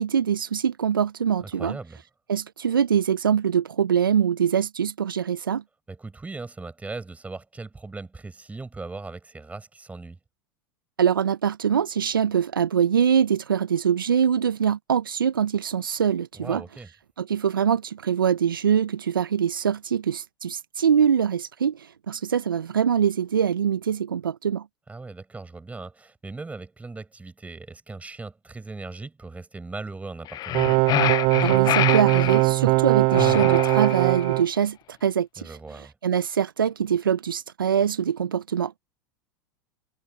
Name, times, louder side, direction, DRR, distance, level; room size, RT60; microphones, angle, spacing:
voice 1, 0.0-1.8 2.3-5.6 11.0-16.6 17.2-24.6 31.4-38.8, right 8 dB, 85° right, 0.8 m, -23 dB
voice 2, 1.5-2.0 5.9-10.2 16.3-16.9 24.9-30.7 35.4-35.9, right 3 dB, 15° right, 7.1 m, -38 dB
sound 1, 30.3-32.4 33.1-34.3, left 14 dB, 35° left, 0.7 m, -26 dB
sound 2, 30.5-34.4, right 28 dB, 50° right, 0.4 m, -20 dB
hypercardioid pair, 90°, 11 cm